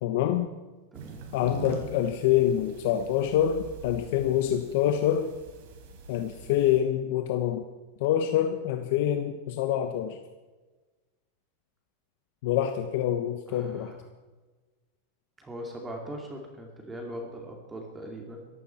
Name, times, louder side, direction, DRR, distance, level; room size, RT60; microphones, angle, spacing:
voice 1, 0.0-0.5 1.3-5.3 6.1-7.6 8.0-10.2 12.4-13.9, left 11 dB, 60° left, 7 dB, 1.2 m, -26 dB
voice 2, 0.9-1.3 13.5-14.0 15.4-18.5, equal, 10° right, 1 dB, 2.3 m, -40 dB
sound 1, 0.9-6.8, right 5 dB, 60° right, 4.0 m, -44 dB
22.0 x 15.0 x 4.4 m, 1.3 s
supercardioid pair, 155°, 0 cm